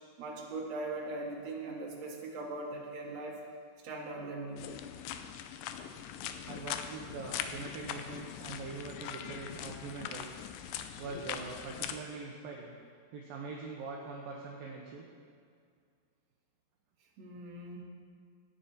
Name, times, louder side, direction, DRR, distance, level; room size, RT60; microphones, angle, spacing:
voice 1, 0.2-3.4 3.8-4.7 17.2-17.8, right 2 dB, 45° right, -3 dB, 2.6 m, -40 dB
sound 1, 4.6-12.0, left 9 dB, 80° left, 2.7 m, -41 dB
voice 2, 6.5-10.4 11.0-12.8 13.1-15.1, right 4 dB, 70° right, -1 dB, 2.5 m, -43 dB
19.0 x 9.8 x 4.4 m, 2.2 s
omnidirectional pair, 4.8 m